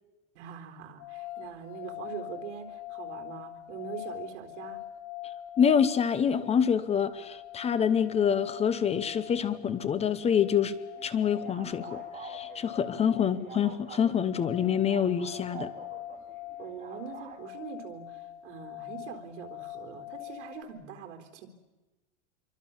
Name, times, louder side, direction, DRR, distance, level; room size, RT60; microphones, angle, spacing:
voice 1, 0.3-4.8 16.6-21.5, right 8 dB, 80° right, 5 dB, 4.0 m, -43 dB
sound 1, 1.0-20.6, left 13 dB, 55° left, 3.4 m, -44 dB
voice 2, 5.6-15.7, left 8 dB, 15° left, 14 dB, 0.8 m, -26 dB
sound 2, 11.0-17.4, right 6 dB, 20° right, 3.3 m, -48 dB
27.0 x 24.0 x 7.2 m, 1.1 s
supercardioid pair, 160°, 36 cm